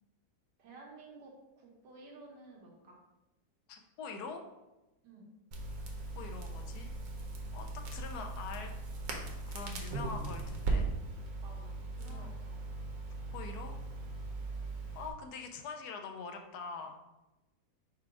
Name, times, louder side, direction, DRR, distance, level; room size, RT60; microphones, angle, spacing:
voice 1, 0.6-3.0 5.0-5.3 11.4-12.7, right 3 dB, 90° right, -2 dB, 1.7 m, -54 dB
voice 2, 3.7-4.4 6.2-7.0 7.5-8.7 9.5-10.9 12.0-12.3 13.3-13.8 14.9-17.0, left 4 dB, 75° left, 4 dB, 1.1 m, -44 dB
Crackle, 5.5-15.1, right 2 dB, 65° right, 1.1 m, -39 dB
5.0 x 2.2 x 4.7 m, 1.0 s
omnidirectional pair, 1.8 m